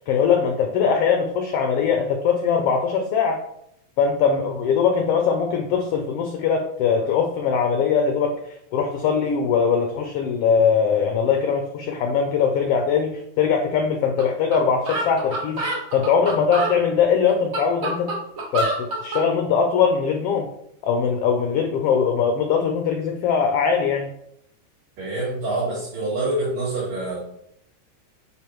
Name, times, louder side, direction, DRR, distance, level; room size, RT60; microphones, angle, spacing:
voice 1, 0.1-3.4 4.0-8.3 8.7-18.1 18.5-20.5 20.8-24.1, left 6 dB, 75° left, 4 dB, 1.4 m, -21 dB
sound 1, 14.2-14.3 14.5-14.6 14.9-16.7 17.3-19.2, right 2 dB, 50° right, 0.9 m, -26 dB
voice 2, 25.0-27.2, right 2 dB, 70° right, -8 dB, 3.0 m, -26 dB
9.3 x 3.7 x 3.0 m, 0.76 s
omnidirectional pair, 3.3 m